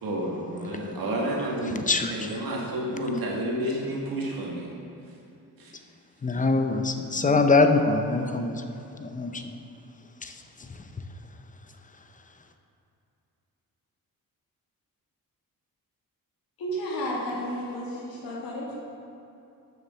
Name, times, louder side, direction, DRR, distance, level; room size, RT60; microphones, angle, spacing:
voice 1, 0.0-1.9 2.1-4.7 5.6-5.7 7.3-7.4, right 1 dB, 80° right, -3 dB, 2.0 m, -30 dB
voice 2, 1.7-2.4 6.2-8.6 9.0-9.6 10.2-10.8, left 3 dB, 25° left, 7 dB, 0.6 m, -24 dB
voice 3, 16.6-18.7, equal, 80° left, -5 dB, 2.3 m, -32 dB
6.9 x 6.6 x 6.3 m, 2.7 s
cardioid pair, 95°, 35 cm